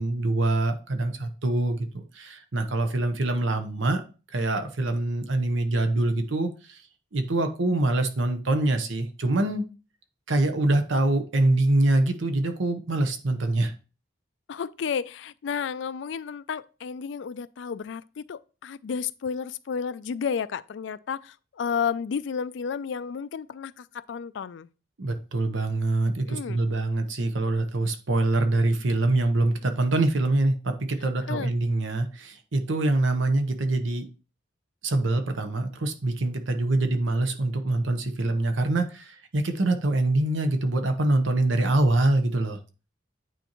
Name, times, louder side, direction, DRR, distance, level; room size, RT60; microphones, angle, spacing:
voice 1, 0.0-4.0 4.3-6.8 7.1-9.6 10.3-13.7 25.0-34.1 34.8-42.6, right 2 dB, 75° right, 0.9 m, -24 dB
voice 2, 14.5-24.7 26.3-26.6 31.3-31.5, left 6 dB, 70° left, 0.3 m, -32 dB
9.2 x 4.3 x 3.0 m
head